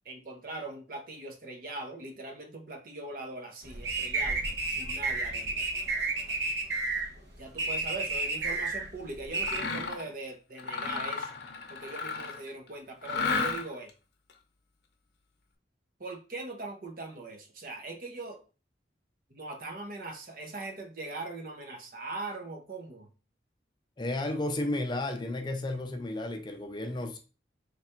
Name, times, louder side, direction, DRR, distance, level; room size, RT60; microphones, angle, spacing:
voice 1, 0.0-5.6 7.4-11.3 11.7-13.9 16.0-18.4 19.3-23.1, right 2 dB, 50° right, 0.7 m, -41 dB
sound 1, 3.6-9.6, right 3 dB, 75° right, 0.9 m, -31 dB
Mechanisms, 9.4-10.1 10.6-12.5 13.0-13.9, left 4 dB, 65° left, 0.6 m, -33 dB
voice 2, 24.0-27.2, left 2 dB, 25° left, 0.4 m, -33 dB
3.3 x 2.4 x 4.3 m
head